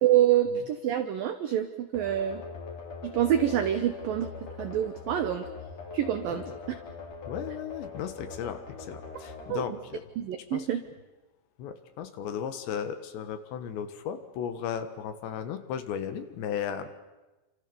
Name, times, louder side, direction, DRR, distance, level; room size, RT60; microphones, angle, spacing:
voice 1, 0.0-2.4 3.0-4.3 4.6-5.5 5.9-6.4 9.5-9.6 10.2-10.8, right 11 dB, 85° right, 9 dB, 1.9 m, -26 dB
sound 1, 1.9-10.6, left 4 dB, 40° left, 3.4 m, -42 dB
voice 2, 7.3-10.0 10.5-10.7 11.6-16.9, left 8 dB, 70° left, 10 dB, 3.5 m, -35 dB
28.5 x 26.5 x 7.0 m, 1.1 s
omnidirectional pair, 5.6 m